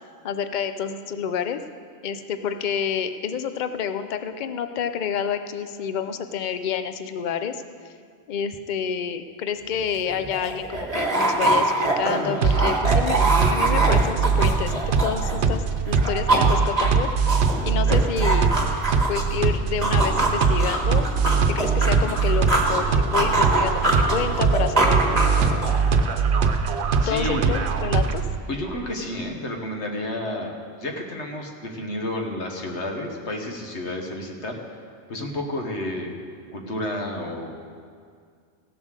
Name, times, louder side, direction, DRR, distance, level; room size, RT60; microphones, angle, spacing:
voice 1, 0.2-1.6 2.0-7.6 8.3-13.2 13.5-17.1 17.6-18.5 19.1-21.0 21.6-25.4 27.1-28.2, left 7 dB, 50° left, 9 dB, 0.7 m, -29 dB
sound 1, 9.7-9.8 10.1-15.6 15.9-19.4 19.8-22.8 23.1-25.9, right 2 dB, 35° right, 1.5 m, -24 dB
sound 2, 12.4-28.4, right 5 dB, 75° right, 1.0 m, -22 dB
voice 2, 27.0-27.6 28.5-34.6 35.1-36.2 36.5-37.5, left 1 dB, 80° left, 2 dB, 1.7 m, -31 dB
15.5 x 7.2 x 6.6 m, 2.1 s
omnidirectional pair, 1.1 m